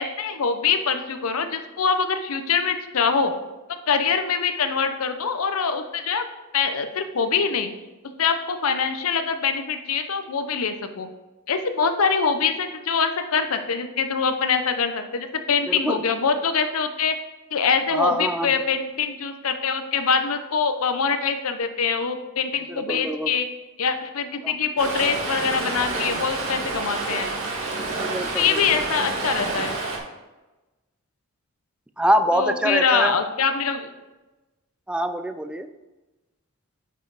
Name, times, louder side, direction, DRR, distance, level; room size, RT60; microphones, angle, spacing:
voice 1, 0.0-3.3 3.7-6.2 6.5-7.7 8.2-11.1 11.5-17.2 17.5-23.5 23.8-27.3 28.3-29.8 32.3-33.9, left 5 dB, 75° left, 8 dB, 0.7 m, -24 dB
voice 2, 15.7-16.0 17.9-18.5 22.7-23.3 24.4-24.5 28.1-28.6 32.0-33.1 34.9-35.7, equal, 5° right, 9 dB, 0.4 m, -24 dB
Stream, 24.8-30.0, right 3 dB, 65° right, 2.0 m, -28 dB
8.8 x 5.6 x 4.0 m, 1.1 s
head